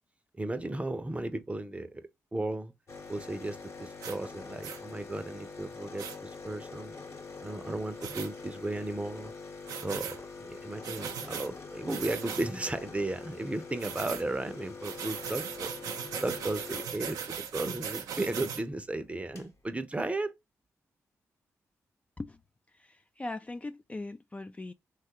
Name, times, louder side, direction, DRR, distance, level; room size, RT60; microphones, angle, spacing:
voice 1, 0.4-2.0 2.3-2.7 3.1-7.0 7.4-9.3 9.8-15.7 16.2-20.3, right 2 dB, 20° right, 0.6 m, -35 dB
sound 1, 2.9-17.5 18.8-18.9 19.1-19.5, left 4 dB, 55° left, 1.0 m, -45 dB
sound 2, 4.0-4.2 4.6-4.8 6.0-6.2 8.0-8.3 9.7-10.2 10.8-11.5 11.9-12.5 13.8-14.2 14.8-18.6, right 7 dB, 85° right, 0.5 m, -38 dB
voice 2, 22.7-24.7, left 2 dB, 20° left, 0.3 m, -40 dB
3.1 x 2.3 x 2.8 m
supercardioid pair, 50°, 6 cm